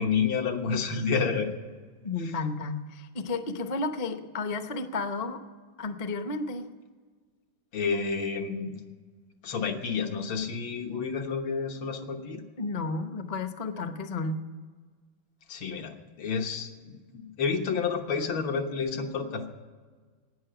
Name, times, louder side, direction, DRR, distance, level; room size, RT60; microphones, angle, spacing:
voice 1, 0.0-1.5 2.2-2.3 7.7-8.8 9.4-12.4 15.5-19.5, left 5 dB, 90° left, 3 dB, 2.1 m, -30 dB
voice 2, 2.0-5.4 5.8-6.7 12.6-14.4, left 3 dB, 55° left, 8 dB, 0.4 m, -32 dB
12.0 x 9.4 x 8.9 m, 1.5 s
omnidirectional pair, 2.1 m